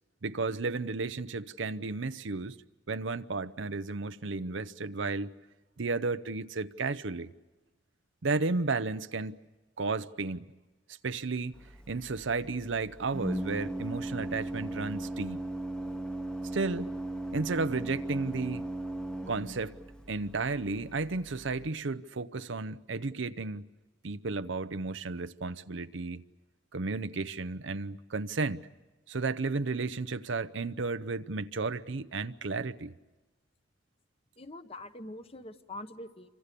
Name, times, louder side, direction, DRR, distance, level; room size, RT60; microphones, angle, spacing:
voice 1, 0.2-2.6 2.9-5.3 5.8-7.3 8.2-9.4 9.8-10.5 11.0-11.5 11.9-15.4 16.5-16.9 17.3-18.6 19.3-19.7 20.1-23.7 24.0-26.2 26.7-28.7 29.1-32.9, right 3 dB, 85° right, 0.8 m, -33 dB
Organ, 11.5-21.7, right 1 dB, 5° left, 1.0 m, -38 dB
voice 2, 34.4-36.3, left 1 dB, 30° left, 1.1 m, -44 dB
28.5 x 25.5 x 6.9 m
head